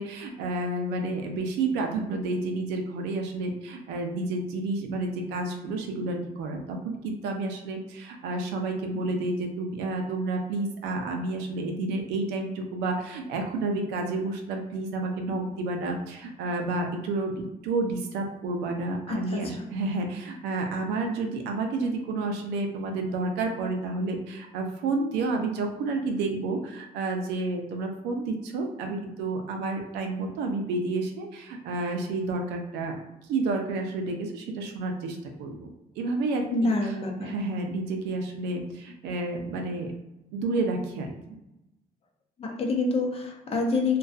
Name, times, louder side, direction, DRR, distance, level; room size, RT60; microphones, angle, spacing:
voice 1, 0.0-33.0 33.3-35.7 36.0-36.7 37.2-39.9 40.3-41.1, right 2 dB, 90° right, 3 dB, 0.5 m, -30 dB
voice 2, 19.1-19.4 36.5-37.3 42.4-44.0, left 3 dB, 35° left, 1 dB, 0.6 m, -26 dB
2.5 x 2.2 x 2.3 m, 0.93 s
cardioid pair, 110°, 17 cm